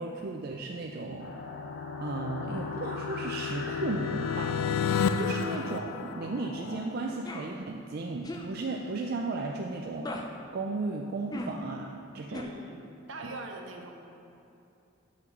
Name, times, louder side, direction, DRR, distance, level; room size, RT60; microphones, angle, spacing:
voice 1, 0.0-1.3 2.0-10.2 10.5-12.5 13.2-13.3, right 3 dB, 50° right, 1 dB, 0.4 m, -35 dB
sound 1, 1.0-6.8, left 6 dB, 80° left, 0.3 m, -32 dB
sound 2, 1.2-6.8, left 2 dB, 55° left, 0.8 m, -42 dB
sound 3, 7.2-7.5 8.2-8.5 10.0-10.2 11.3-11.5 12.3-12.4, left 2 dB, 20° left, 0.5 m, -37 dB
voice 2, 12.3-12.8 13.1-13.9, right 2 dB, 70° right, 2 dB, 0.9 m, -43 dB
6.0 x 5.9 x 5.9 m, 2.8 s
head